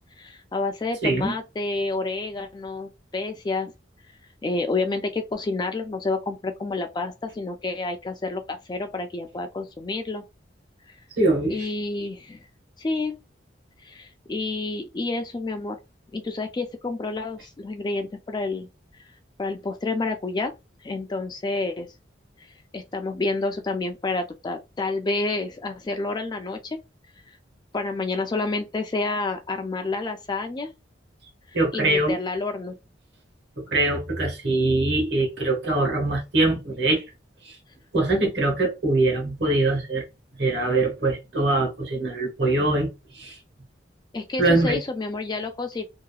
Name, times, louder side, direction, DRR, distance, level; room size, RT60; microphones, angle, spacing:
voice 1, 0.2-3.7 4.4-10.2 11.5-12.4 12.8-13.2 13.8-15.8 16.1-18.7 19.4-20.5 20.8-21.9 22.7-26.8 27.7-30.7 31.7-32.8 44.1-45.8, left 3 dB, 25° left, 0.3 m, -29 dB
voice 2, 1.0-1.3 11.2-11.6 31.5-32.1 33.6-37.0 37.4-37.6 37.9-40.0 40.4-42.9 43.1-43.4 44.4-44.8, right 2 dB, 65° right, 1.3 m, -23 dB
2.8 x 2.3 x 2.3 m
head